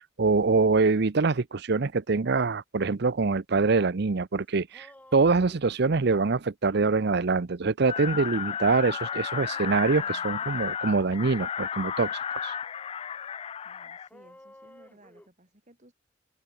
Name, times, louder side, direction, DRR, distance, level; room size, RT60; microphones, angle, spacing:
voice 1, 0.0-4.9 5.1-12.5, right 4 dB, 60° right, 0.7 m, -24 dB
sound 1, 4.3-4.4 4.5-6.3 8.7-10.6 11.0-11.2 14.1-15.3, left 1 dB, 10° left, 2.1 m, -53 dB
sound 2, 7.9-14.1, left 8 dB, 30° left, 0.3 m, -33 dB
voice 2, 13.6-15.9, right 1 dB, 40° right, 7.7 m, -58 dB
head